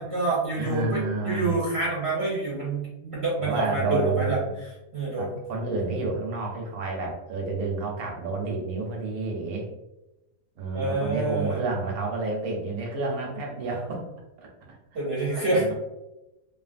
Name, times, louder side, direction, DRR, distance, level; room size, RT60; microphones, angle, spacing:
voice 1, 0.0-5.3 10.7-11.6 14.9-15.7, right 2 dB, 55° right, -6 dB, 0.9 m, -27 dB
voice 2, 0.6-1.5 3.4-4.5 5.2-9.7 10.6-14.0 15.3-15.7, right 3 dB, 85° right, 0 dB, 1.2 m, -30 dB
2.7 x 2.5 x 2.4 m, 0.96 s
omnidirectional pair, 1.5 m